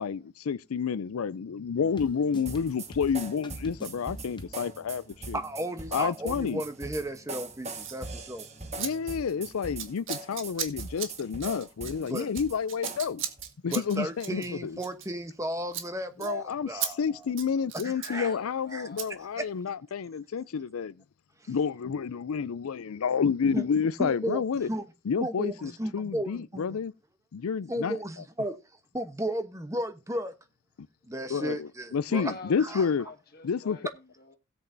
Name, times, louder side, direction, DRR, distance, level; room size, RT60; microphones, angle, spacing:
voice 1, 0.0-5.4 5.9-6.6 8.8-13.2 13.6-14.8 16.2-20.9 21.5-24.7 25.1-26.9 27.3-28.0 31.3-33.0 33.4-33.8, left 6 dB, 90° left, 0.4 m, -30 dB
sound 1, 1.8-9.5, equal, 20° left, 1.3 m, -50 dB
sound 2, 2.4-13.5, right 3 dB, 30° right, 1.4 m, -41 dB
voice 2, 5.3-8.5 12.1-12.3 13.6-17.3 17.7-18.3 18.7-18.9 19.4-19.5 21.4-21.5 23.5-23.6 24.0-24.4 24.7-24.8 25.2-26.7 27.7-28.6 28.9-30.3 31.0-32.3 32.6-32.9, right 1 dB, 15° right, 1.0 m, -34 dB
Scissors, 7.8-8.0 8.8-8.9 9.2-9.4 9.8-15.4 15.7-15.9 16.2-16.3 16.8-16.9 17.2-18.2 19.0-19.1, right 10 dB, 65° right, 1.7 m, -37 dB
voice 3, 18.0-19.1 32.1-34.4, left 2 dB, 45° left, 1.6 m, -46 dB
17.0 x 8.1 x 2.7 m
head